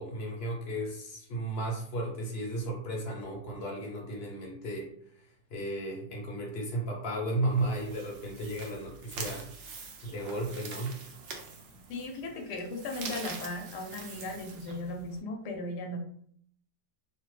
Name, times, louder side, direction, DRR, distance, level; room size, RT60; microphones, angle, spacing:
voice 1, 0.0-4.9 5.2-9.5 10.0-10.9, right 1 dB, 50° left, -1 dB, 0.8 m, -34 dB
sound 1, 7.5-15.2, right 4 dB, 70° right, 0.7 m, -45 dB
voice 2, 11.9-16.0, left 2 dB, 80° left, 3 dB, 1.2 m, -37 dB
2.8 x 2.1 x 3.1 m, 0.63 s
omnidirectional pair, 1.8 m